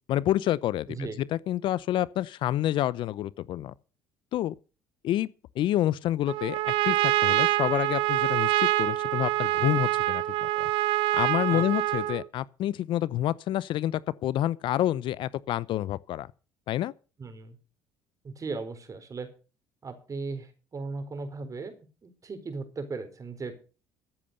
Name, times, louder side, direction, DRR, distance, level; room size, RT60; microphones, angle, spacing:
voice 1, 0.1-3.7 4.3-4.5 5.0-5.3 5.6-10.2 10.6-10.7 11.2-16.3 16.7-16.9, left 13 dB, 60° left, 0.6 m, -28 dB
voice 2, 0.9-1.2 11.5-11.6 17.2-17.6 18.2-19.3 19.8-21.7 22.0-23.5, right 4 dB, 35° right, 4.2 m, -37 dB
Trumpet, 6.3-12.3, right 16 dB, 70° right, 0.7 m, -26 dB
14.5 x 8.7 x 6.6 m
hypercardioid pair, 65°, 9 cm